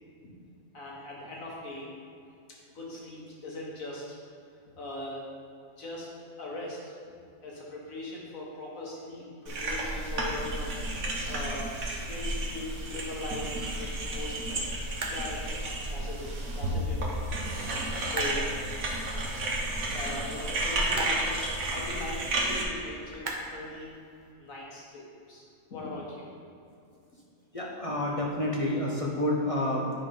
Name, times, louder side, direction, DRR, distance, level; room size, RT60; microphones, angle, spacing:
voice 1, 0.7-1.9 2.7-4.2 4.8-5.3 5.8-6.1 6.4-6.9 7.4-10.8 11.3-14.7 15.1-17.2 18.0-18.5 19.9-23.9 24.4-26.3, left 2 dB, 70° left, -4 dB, 2.0 m, -40 dB
sound 1, 9.5-22.6, right 1 dB, 75° right, 1.7 m, -32 dB
sound 2, 11.1-24.3, right 2 dB, 40° right, 0.9 m, -44 dB
voice 2, 27.5-30.0, left 1 dB, 30° left, -3 dB, 0.8 m, -29 dB
9.8 x 4.0 x 5.4 m, 2.5 s
omnidirectional pair, 1.5 m